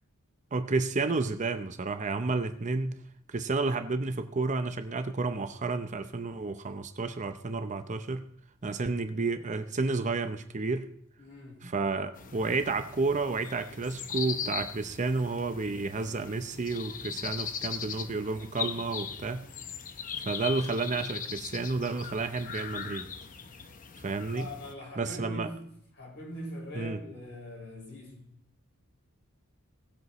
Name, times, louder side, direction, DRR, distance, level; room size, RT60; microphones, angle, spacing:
voice 1, 0.5-3.0 3.3-8.3 8.6-10.9 11.6-19.5 20.2-23.1 24.0-24.5 25.0-25.5 26.7-27.0, right 3 dB, 35° right, 8 dB, 0.7 m, -31 dB
voice 2, 11.2-11.7 24.3-28.3, equal, 55° left, -2 dB, 5.7 m, -42 dB
sound 1, 12.1-24.7, left 7 dB, 40° left, 0.7 m, -39 dB
19.0 x 7.9 x 3.1 m, 0.73 s
head